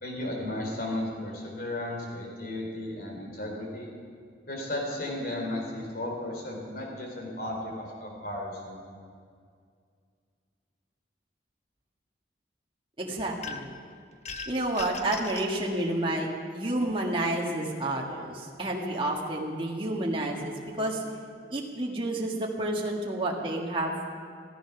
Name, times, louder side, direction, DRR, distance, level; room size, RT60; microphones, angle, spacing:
voice 1, 0.0-3.9 4.5-8.8, left 1 dB, 55° left, 0 dB, 3.6 m, -34 dB
voice 2, 13.0-13.7 14.5-21.0 21.5-23.9, right 1 dB, 30° right, -2 dB, 1.6 m, -30 dB
sound 1, 13.4-13.8 14.2-15.5, left 5 dB, 40° left, 1.0 m, -39 dB
15.0 x 14.5 x 5.9 m, 2.2 s
head